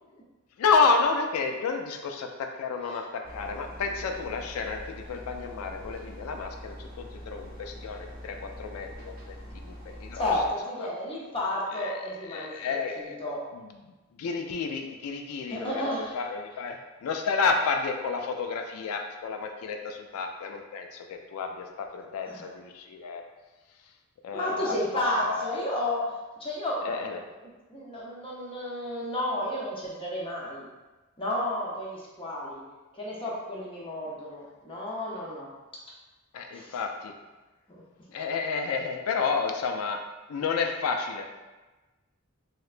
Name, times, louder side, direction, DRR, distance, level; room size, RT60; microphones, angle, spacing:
voice 1, 0.6-9.3 9.6-10.3 11.8-12.0 12.3-13.2 13.5-13.7 14.2-23.2 24.2-25.6 26.8-27.2 36.3-37.1 38.1-40.0 40.3-41.2, left 5 dB, 75° left, 4 dB, 0.3 m, -30 dB
sound 1, 3.2-10.5, equal, 40° right, 0.8 m, -44 dB
voice 2, 10.1-12.5 13.0-13.5 15.5-16.2 22.3-22.5 24.3-27.1 27.4-30.7 31.2-32.6 32.9-35.5 36.5-36.8 37.7-37.8, left 1 dB, 25° left, -4 dB, 0.5 m, -32 dB
3.2 x 2.8 x 2.4 m, 1.2 s
head